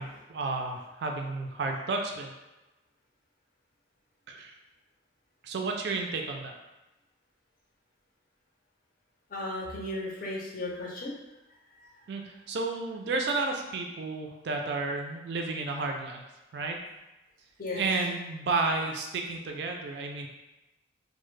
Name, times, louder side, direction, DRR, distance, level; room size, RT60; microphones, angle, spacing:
voice 1, 0.0-2.3 4.3-4.5 5.4-6.5 12.1-16.2 16.5-16.8 17.8-20.3, right 3 dB, 60° right, 3 dB, 0.3 m, -32 dB
voice 2, 9.3-11.2 11.7-11.9 17.6-17.8, left 1 dB, 45° left, -3 dB, 0.5 m, -35 dB
2.1 x 2.0 x 3.1 m, 1.0 s
head